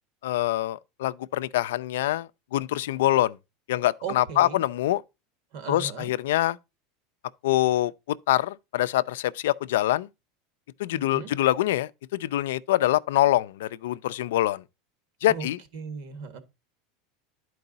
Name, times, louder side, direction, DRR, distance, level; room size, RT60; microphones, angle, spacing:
voice 1, 0.2-3.4 3.7-5.0 5.7-6.6 7.4-10.1 10.8-14.6 15.2-15.6, left 14 dB, 85° left, 0.4 m, -25 dB
voice 2, 4.0-4.6 5.5-6.1 10.9-11.3 15.3-15.5 15.7-16.4, right 6 dB, 65° right, 1.6 m, -36 dB
11.0 x 4.7 x 3.9 m
supercardioid pair, 150°, 0 cm